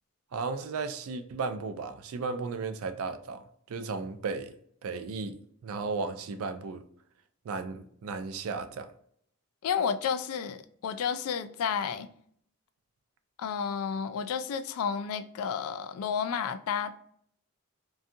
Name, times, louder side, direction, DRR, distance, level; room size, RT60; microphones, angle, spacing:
voice 1, 0.3-4.5 4.8-5.4 5.6-6.8 7.4-8.9, right 4 dB, 80° right, 0.4 m, -35 dB
voice 2, 9.6-12.1 13.4-17.0, left 7 dB, 80° left, 0.3 m, -31 dB
2.6 x 2.3 x 2.5 m
head